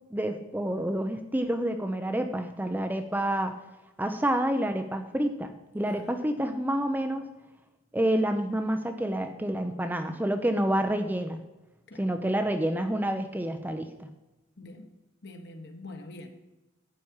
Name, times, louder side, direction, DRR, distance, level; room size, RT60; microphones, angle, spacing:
voice 1, 0.1-3.6 4.0-7.3 7.9-11.4 11.9-14.1, right 1 dB, 10° right, 6 dB, 0.6 m, -28 dB
voice 2, 14.6-14.9 15.2-16.5, left 2 dB, 55° left, 4 dB, 1.6 m, -44 dB
12.0 x 8.7 x 4.8 m, 1.0 s
head